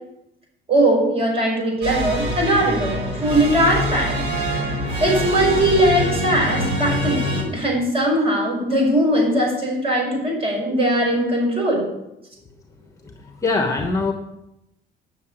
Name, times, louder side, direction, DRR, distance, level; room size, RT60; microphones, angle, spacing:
voice 1, 0.7-4.2 5.0-11.9, right 1 dB, 30° right, -2 dB, 5.7 m, -20 dB
sound 1, 1.8-7.4, equal, 60° right, 4.1 m, -24 dB
voice 2, 13.0-14.1, left 3 dB, 15° left, 4 dB, 1.1 m, -23 dB
9.6 x 6.9 x 8.9 m, 0.86 s
cardioid pair, 145°, 20 cm